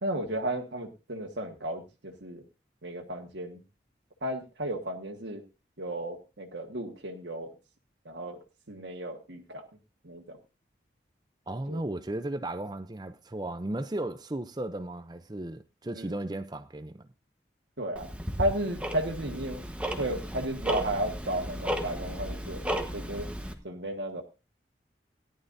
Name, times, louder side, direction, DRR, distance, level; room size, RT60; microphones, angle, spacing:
voice 1, 0.0-2.4 2.8-3.6 4.2-5.4 5.8-7.5 8.0-8.4 8.7-9.7 10.0-10.4 11.7-11.8 15.9-16.2 17.8-18.1 18.4-19.6 19.9-22.6 22.9-23.3 23.6-24.2, right 1 dB, 80° right, 1.6 m, -33 dB
voice 2, 11.5-17.1, right 1 dB, 25° right, 0.5 m, -35 dB
Tick-tock, 18.0-23.5, equal, 5° right, 1.2 m, -34 dB
18.0 x 11.0 x 2.7 m
head